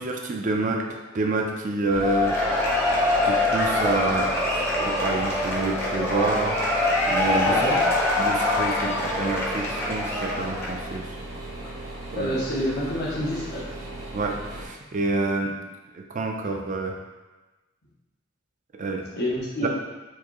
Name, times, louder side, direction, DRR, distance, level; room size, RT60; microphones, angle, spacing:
voice 1, 0.0-2.4 3.2-6.6 7.1-7.6 8.2-11.1 12.1-12.3 14.1-15.5 15.9-17.0 18.7-19.1 19.6-19.7, right 3 dB, 40° right, 2 dB, 0.4 m, -28 dB
sound 1, 1.9-14.7, right 1 dB, 85° right, 1.0 m, -37 dB
Cheering / Applause / Crowd, 2.0-10.9, left 2 dB, 10° left, 0.7 m, -24 dB
voice 2, 7.5-7.8 12.2-13.6 19.1-19.7, equal, 50° left, -6 dB, 0.7 m, -27 dB
4.5 x 2.6 x 2.9 m, 1.2 s
head